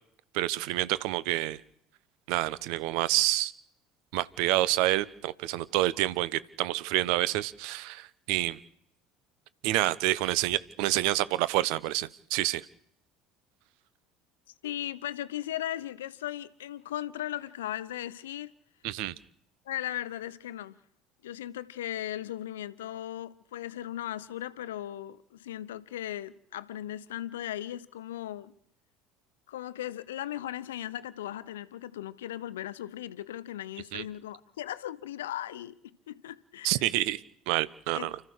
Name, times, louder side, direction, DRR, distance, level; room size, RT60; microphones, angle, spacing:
voice 1, 0.3-1.6 2.3-3.5 4.1-8.6 9.6-12.6 18.8-19.1 33.9-34.0 36.6-38.2, right 16 dB, 60° right, 1.0 m, -28 dB
voice 2, 14.6-18.5 19.6-20.8 21.2-28.5 29.5-36.9 37.9-38.1, left 12 dB, 75° left, 1.0 m, -37 dB
30.0 x 14.0 x 6.6 m
figure-of-eight pair, 65°, 0 cm